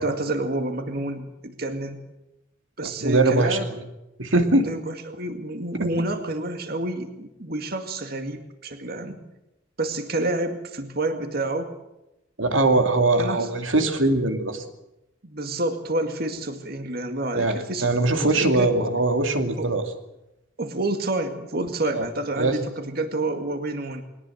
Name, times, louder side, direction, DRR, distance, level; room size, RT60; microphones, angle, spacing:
voice 1, 0.0-2.0 2.8-3.7 4.6-9.2 9.8-11.7 13.2-13.5 15.2-18.8 19.6-19.7 20.6-24.0, right 2 dB, 50° right, 7 dB, 2.1 m, -29 dB
voice 2, 2.8-3.8 4.2-4.7 5.7-5.9 12.4-14.6 17.4-19.8 21.9-22.1 22.4-22.6, right 2 dB, 80° right, 6 dB, 2.5 m, -21 dB
21.5 x 18.5 x 8.0 m, 0.91 s
head